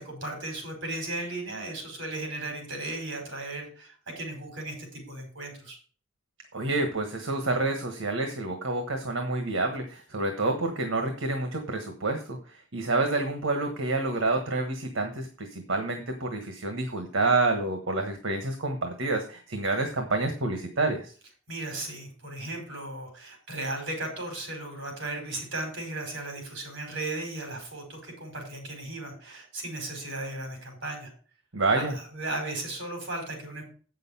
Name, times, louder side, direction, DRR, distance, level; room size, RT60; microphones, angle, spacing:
voice 1, 0.0-5.8 21.5-31.1 31.7-33.7, right 2 dB, 65° right, 2 dB, 5.0 m, -36 dB
voice 2, 6.5-21.1 31.5-31.9, right 2 dB, 80° right, 5 dB, 1.4 m, -28 dB
8.3 x 6.7 x 5.6 m, 0.39 s
head